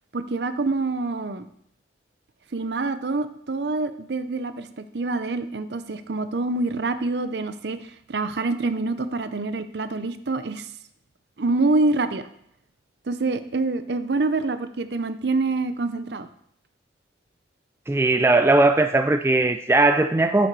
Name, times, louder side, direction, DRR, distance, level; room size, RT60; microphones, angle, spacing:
voice 1, 0.1-1.5 2.5-4.7 4.9-10.7 11.4-12.3 13.1-16.3, right 3 dB, 65° right, 11 dB, 0.6 m, -26 dB
voice 2, 17.9-20.5, right 2 dB, 15° right, 8 dB, 0.3 m, -19 dB
8.7 x 6.8 x 4.6 m, 0.69 s
head